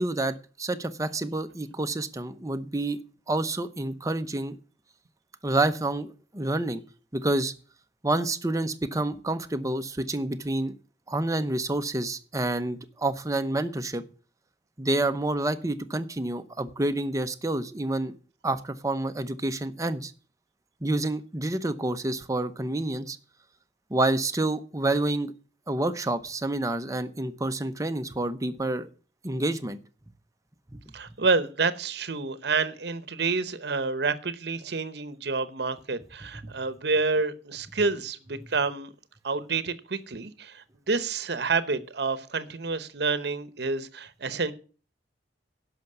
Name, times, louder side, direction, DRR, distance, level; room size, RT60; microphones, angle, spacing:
voice 1, 0.0-3.0 3.3-4.6 5.4-6.8 7.1-7.5 8.0-10.7 11.1-14.0 14.8-18.1 18.4-20.1 20.8-23.2 23.9-25.3 25.7-28.9 29.2-29.8 30.7-30.8 36.4-36.5, right 2 dB, 20° right, 0.8 m, -28 dB
voice 2, 30.9-38.9 39.2-44.5, right 4 dB, 65° right, 0.9 m, -28 dB
11.0 x 5.9 x 7.9 m
head